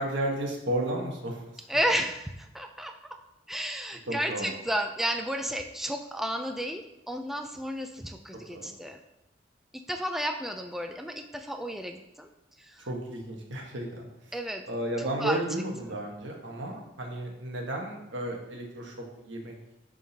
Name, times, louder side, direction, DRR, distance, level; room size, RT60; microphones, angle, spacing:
voice 1, 0.0-1.4 4.1-4.5 8.5-8.7 12.9-14.1 14.7-19.5, right 1 dB, 85° right, 1 dB, 1.2 m, -33 dB
voice 2, 1.7-3.2 3.5-9.0 9.7-12.3 12.6-12.9 14.3-14.6 15.0-15.4, equal, ahead, 4 dB, 0.3 m, -32 dB
10.5 x 3.7 x 2.8 m, 0.90 s
head